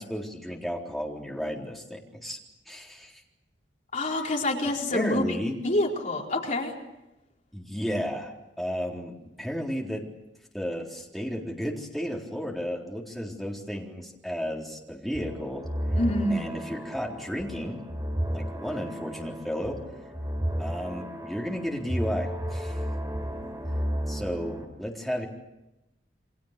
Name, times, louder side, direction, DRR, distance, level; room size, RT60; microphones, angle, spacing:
voice 1, 0.0-2.4 2.7-3.2 4.9-5.5 7.5-8.3 8.6-10.0 10.5-15.6 16.3-17.8 18.3-19.8 20.6-22.8 24.1-25.3, equal, ahead, -1 dB, 4.0 m, -33 dB
voice 2, 3.9-5.3 5.6-6.7 15.9-16.4, left 1 dB, 45° left, -1 dB, 4.4 m, -26 dB
sound 1, 15.1-24.7, equal, 20° right, 4.1 m, -33 dB
29.5 x 25.0 x 6.8 m, 0.93 s
head